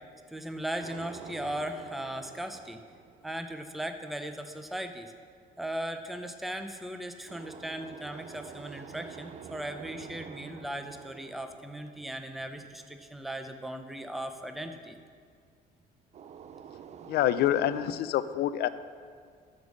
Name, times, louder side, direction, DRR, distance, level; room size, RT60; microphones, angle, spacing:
voice 1, 0.3-2.8 3.2-5.1 5.6-15.0, right 1 dB, ahead, 7 dB, 0.6 m, -38 dB
sound 1, 0.8-3.9 7.3-12.7 16.1-17.9, right 7 dB, 40° right, 0.4 m, -47 dB
voice 2, 17.1-18.7, left 12 dB, 70° left, 14 dB, 0.5 m, -26 dB
12.5 x 5.4 x 6.4 m, 2.1 s
cardioid pair, 110°, 17 cm